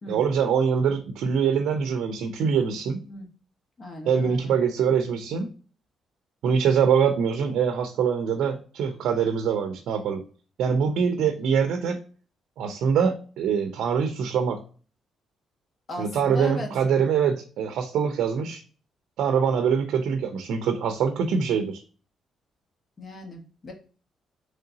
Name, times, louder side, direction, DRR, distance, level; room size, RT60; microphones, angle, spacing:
voice 1, 0.1-3.0 4.1-5.5 6.4-10.2 10.6-12.0 12.6-14.6 16.0-18.6 19.2-21.8, right 7 dB, 80° right, 7 dB, 0.5 m, -24 dB
voice 2, 3.8-4.5 15.9-16.7 23.0-23.7, left 1 dB, 40° left, 2 dB, 1.3 m, -37 dB
3.7 x 3.2 x 2.7 m, 0.39 s
cardioid pair, 90°, 0 cm